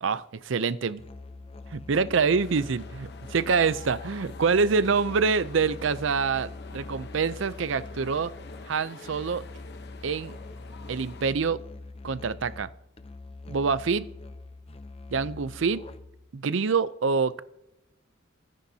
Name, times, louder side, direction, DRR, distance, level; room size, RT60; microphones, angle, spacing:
voice 1, 0.0-1.0 1.7-8.3 8.7-9.4 10.0-10.3 10.9-11.6 12.0-12.7 13.5-14.1 15.1-15.8 16.3-17.4, right 5 dB, 65° right, 16 dB, 0.5 m, -26 dB
Musical instrument, 1.0-16.3, left 2 dB, 30° left, 0.7 m, -43 dB
sound 1, 2.4-11.3, left 4 dB, 55° left, 0.9 m, -47 dB
24.0 x 10.0 x 2.8 m, 0.90 s
head